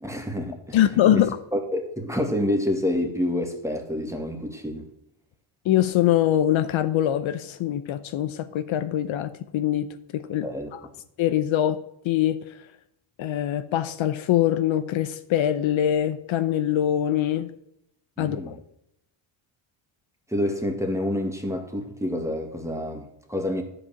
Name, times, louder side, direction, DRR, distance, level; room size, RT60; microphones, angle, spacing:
voice 1, 0.0-0.8 1.1-4.9 10.4-10.7 18.2-18.6 20.3-23.6, left 1 dB, 5° right, 1.8 m, -28 dB
voice 2, 0.7-1.3 5.6-9.9 10.1-10.8 11.2-11.8 12.0-12.4 13.2-17.5 18.2-18.6, left 11 dB, 65° left, 0.8 m, -23 dB
11.0 x 5.0 x 7.1 m
cardioid pair, 100°, 50 cm